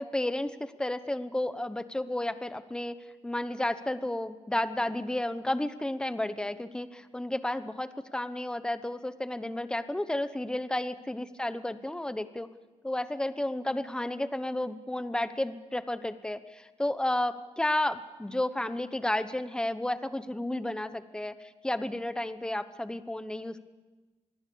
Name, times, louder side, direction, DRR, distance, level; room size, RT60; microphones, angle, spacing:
voice 1, 0.0-2.9 3.2-12.5 12.8-23.6, left 1 dB, 5° left, 12 dB, 1.0 m, -32 dB
26.0 x 20.5 x 7.0 m, 1.2 s
wide cardioid pair, 145°, 12 cm